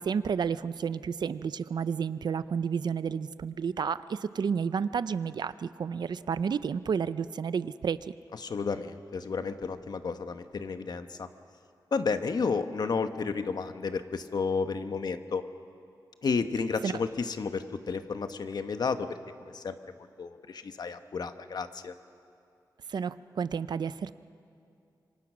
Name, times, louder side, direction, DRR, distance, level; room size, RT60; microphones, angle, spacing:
voice 1, 0.1-8.0 16.8-16.9 22.9-24.1, right 6 dB, 75° right, 14 dB, 0.6 m, -31 dB
voice 2, 8.4-11.3 11.9-15.4 16.2-19.1 19.4-21.9, left 5 dB, 65° left, 9 dB, 1.2 m, -32 dB
26.5 x 25.0 x 6.2 m, 2.5 s
wide cardioid pair, 90°, 7 cm